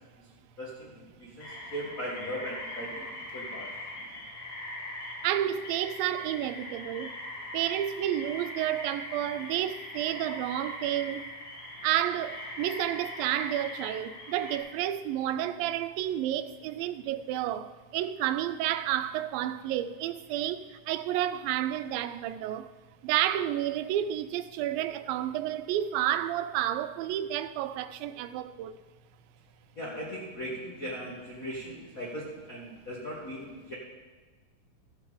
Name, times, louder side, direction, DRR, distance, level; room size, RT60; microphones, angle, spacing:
voice 1, 0.6-3.7 29.7-33.7, equal, 65° left, 0.8 m, -39 dB
sound 1, 1.4-14.6, left 1 dB, 90° left, 4.2 m, -41 dB
voice 2, 5.2-7.1 7.5-11.2 11.8-20.6 20.9-22.7 23.0-28.7, right 12 dB, 85° right, 2.3 m, -30 dB
14.0 x 7.3 x 4.9 m
omnidirectional pair, 4.0 m